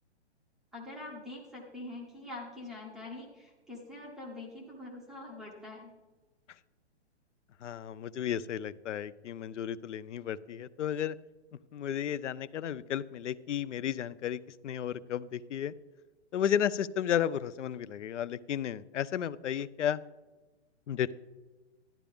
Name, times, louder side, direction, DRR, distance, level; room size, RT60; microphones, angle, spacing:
voice 1, 0.7-5.9, left 2 dB, ahead, -3 dB, 0.4 m, -44 dB
voice 2, 7.6-11.2 11.7-15.7 16.3-20.0 20.9-21.1, left 9 dB, 85° left, 17 dB, 0.6 m, -33 dB
12.0 x 10.0 x 3.5 m, 1.2 s
hypercardioid pair, 155°, 35 cm